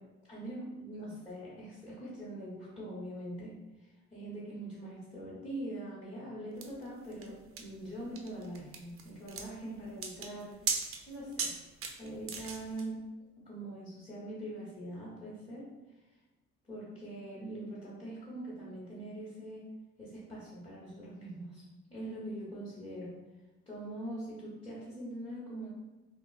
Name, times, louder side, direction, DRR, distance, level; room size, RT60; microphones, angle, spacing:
voice 1, 0.3-11.5 12.0-13.0 13.4-15.7 16.6-19.6 20.0-21.6 21.9-23.2 23.7-25.7, right 1 dB, 15° left, -10 dB, 1.0 m, -43 dB
sound 1, 6.6-12.9, right 5 dB, 45° right, 0.4 m, -38 dB
2.9 x 2.3 x 2.4 m, 1.1 s
cardioid pair, 90°, 30 cm